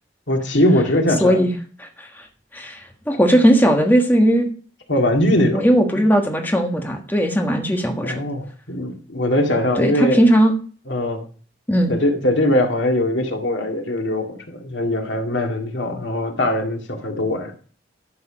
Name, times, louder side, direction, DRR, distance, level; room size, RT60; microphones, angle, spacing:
voice 1, 0.3-1.4 4.9-5.6 8.0-10.2 10.9-11.3 11.9-17.5, left 1 dB, 85° left, 3 dB, 2.1 m, -21 dB
voice 2, 1.2-1.5 1.8-2.3 2.5-4.5 5.5-8.2 9.8-10.5 11.7-11.9, equal, 10° left, 3 dB, 1.3 m, -17 dB
11.5 x 6.9 x 5.0 m, 0.42 s
head